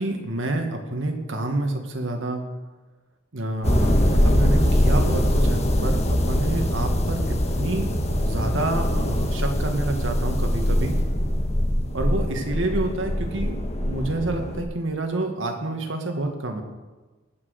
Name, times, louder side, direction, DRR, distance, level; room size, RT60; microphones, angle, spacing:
voice 1, 0.0-2.4 3.3-7.9 8.2-10.9 11.9-16.6, right 2 dB, 90° right, 4 dB, 1.9 m, -28 dB
sound 1, 3.6-14.6, equal, 35° left, 1.4 m, -22 dB
18.5 x 6.2 x 6.5 m, 1.2 s
head